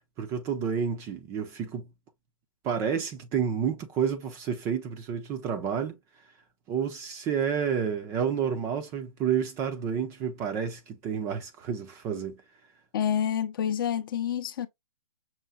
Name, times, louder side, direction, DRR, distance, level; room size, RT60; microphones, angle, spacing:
voice 1, 0.2-1.9 2.6-6.0 6.7-12.4, right 7 dB, 15° right, 0.5 m, -30 dB
voice 2, 12.9-14.7, left 9 dB, 40° left, 0.5 m, -28 dB
5.6 x 2.5 x 2.4 m
hypercardioid pair, 145°, 18 cm